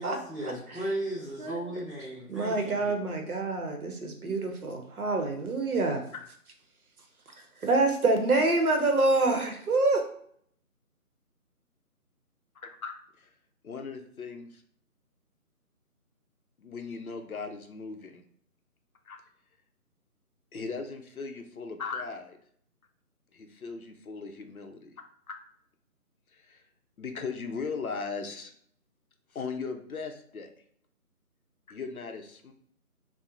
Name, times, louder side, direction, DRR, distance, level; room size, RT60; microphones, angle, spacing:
voice 1, 0.0-2.9, right 1 dB, ahead, -15 dB, 0.8 m, -36 dB
voice 2, 1.4-1.8 2.3-6.0 7.6-10.0, right 2 dB, 70° right, 3 dB, 0.7 m, -26 dB
voice 3, 12.6-13.3 13.6-14.6 16.6-18.2 19.0-19.2 20.5-22.4 23.3-24.9 25.3-25.4 26.3-26.6 27.0-28.5 29.3-30.5 31.7-32.5, left 4 dB, 70° left, 5 dB, 0.6 m, -38 dB
2.9 x 2.1 x 2.4 m, 0.63 s
figure-of-eight pair, 180°, 45 cm